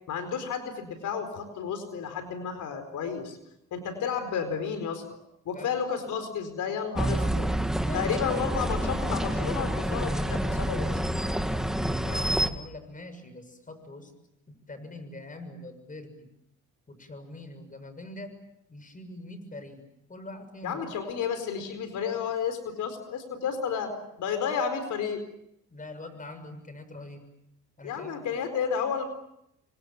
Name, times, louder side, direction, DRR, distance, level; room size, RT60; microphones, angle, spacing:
voice 1, 0.1-3.4 3.7-5.0 5.4-7.5 7.9-11.0 20.6-25.2 27.8-29.0, left 7 dB, 80° left, 9 dB, 4.5 m, -32 dB
sound 1, 7.0-12.5, equal, ahead, 2.1 m, -28 dB
voice 2, 11.8-14.1 14.5-16.3 16.9-18.3 18.7-19.8 20.1-20.8 25.7-27.2 27.8-28.4, left 1 dB, 25° left, 10 dB, 6.7 m, -43 dB
30.0 x 24.5 x 7.2 m, 0.79 s
cardioid pair, 90°, 30 cm